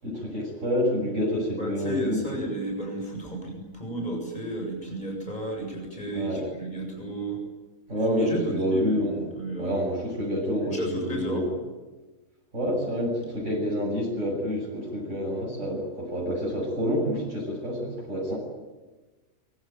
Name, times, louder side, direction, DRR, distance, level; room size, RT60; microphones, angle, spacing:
voice 1, 0.0-2.2 6.1-6.5 7.9-9.2 9.6-11.5 12.5-18.4, equal, 60° right, -4 dB, 7.9 m, -28 dB
voice 2, 1.6-7.4 8.2-9.8 10.6-11.4, right 1 dB, 30° left, 1 dB, 7.7 m, -33 dB
24.5 x 24.0 x 9.3 m, 1.2 s
omnidirectional pair, 1.4 m